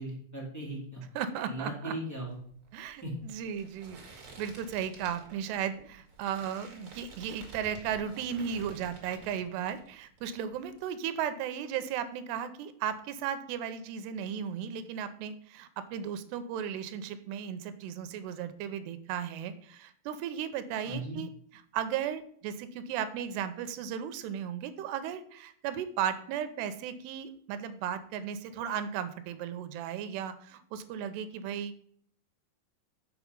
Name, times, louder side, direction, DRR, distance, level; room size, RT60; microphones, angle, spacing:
voice 1, 0.0-1.0 1.5-2.4 3.0-3.1 20.8-21.2, right 1 dB, 10° left, -3 dB, 1.1 m, -38 dB
voice 2, 1.2-1.9 2.7-4.0 4.4-21.3 21.7-31.8, right 8 dB, 85° right, 11 dB, 2.9 m, -35 dB
sound 1, 2.2-9.9 10.2-10.8, right 3 dB, 45° right, 1.9 m, -51 dB
6.9 x 6.1 x 5.2 m, 0.62 s
omnidirectional pair, 4.8 m